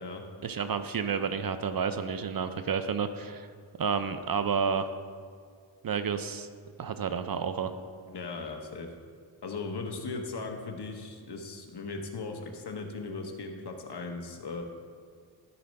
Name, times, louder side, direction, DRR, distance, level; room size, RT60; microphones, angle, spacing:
voice 1, 0.4-3.5 3.8-4.9 5.8-6.5 6.8-7.7, right 6 dB, 50° right, 10 dB, 0.5 m, -30 dB
voice 2, 8.1-8.9 9.4-14.6, left 3 dB, 60° left, 4 dB, 1.1 m, -38 dB
13.0 x 4.3 x 5.3 m, 2.1 s
wide cardioid pair, 90°, 46 cm